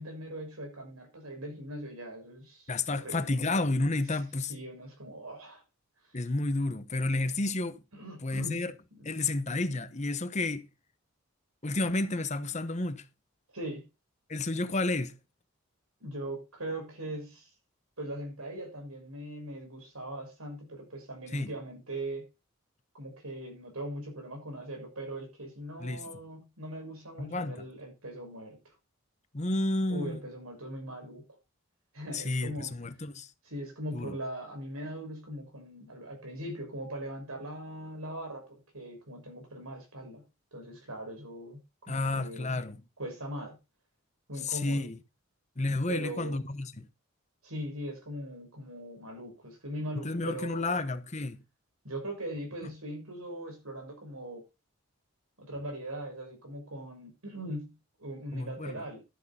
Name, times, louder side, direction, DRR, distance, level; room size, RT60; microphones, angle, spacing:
voice 1, 0.0-3.3 4.5-5.6 7.9-8.7 8.9-9.1 13.5-13.9 16.0-17.5 18.0-22.3 22.9-28.7 29.9-31.2 31.9-32.7 33.4-40.2 40.5-41.6 41.9-42.6 43.0-43.6 44.3-44.9 45.9-46.4 47.4-50.9 51.8-54.5 55.4-59.0, right 1 dB, 90° right, 6.4 m, -40 dB
voice 2, 2.7-4.5 6.1-7.8 8.2-8.7 9.0-10.6 11.6-13.0 14.3-15.1 21.3-21.5 25.8-26.0 27.2-27.6 29.3-30.2 32.1-33.3 33.9-34.1 41.9-42.8 44.4-45.0 45.6-46.9 50.0-51.4 52.6-52.7 58.3-58.8, left 2 dB, 35° left, 1.0 m, -31 dB
12.5 x 8.4 x 4.3 m
head